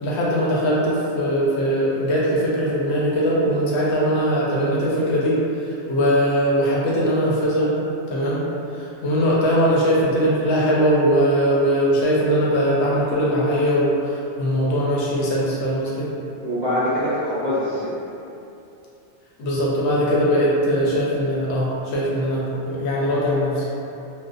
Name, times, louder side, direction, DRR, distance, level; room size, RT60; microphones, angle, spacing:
voice 1, 0.0-5.4 5.6-7.7 8.1-8.4 8.7-16.1 19.4-23.7, equal, 75° left, -6 dB, 0.8 m, -20 dB
voice 2, 16.3-17.9, left 1 dB, 55° right, -11 dB, 0.5 m, -24 dB
2.5 x 2.1 x 2.4 m, 2.7 s
omnidirectional pair, 1.2 m